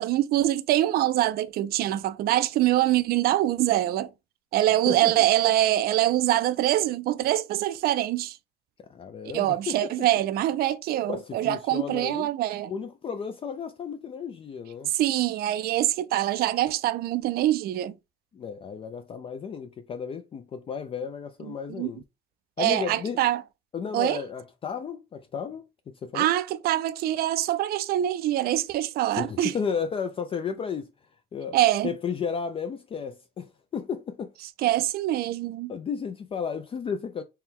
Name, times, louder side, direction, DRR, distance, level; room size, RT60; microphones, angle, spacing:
voice 1, 0.0-4.1 4.5-8.4 9.3-12.7 14.9-17.9 21.8-21.9 22.6-23.4 23.9-24.2 26.1-29.5 31.5-31.9 34.6-35.7, right 14 dB, 65° right, 0.4 m, -24 dB
voice 2, 4.9-5.3 8.8-10.1 11.1-12.3 12.7-14.9 18.3-22.0 22.6-23.2 23.7-26.3 29.2-30.9 31.3-31.6 31.8-34.3 35.7-37.2, left 6 dB, 35° left, 0.4 m, -33 dB
4.3 x 2.2 x 3.6 m
cardioid pair, 110°, 17 cm